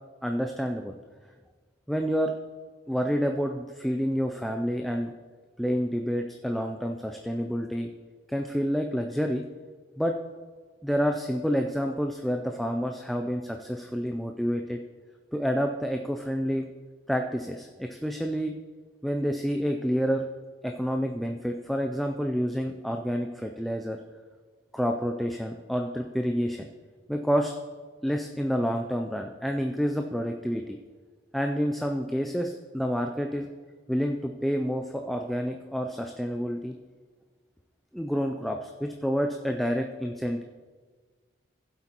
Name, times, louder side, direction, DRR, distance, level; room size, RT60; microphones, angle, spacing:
voice 1, 0.2-0.9 1.9-2.3 2.9-5.1 5.6-7.9 8.3-9.4 10.0-10.2 10.8-14.8 15.3-16.7 17.1-18.6 19.0-20.2 20.6-24.0 24.7-26.7 27.1-27.5 28.0-30.8 31.3-33.5 33.9-36.8 37.9-40.4, equal, ahead, 3 dB, 0.3 m, -28 dB
15.5 x 7.8 x 2.9 m, 1.5 s
head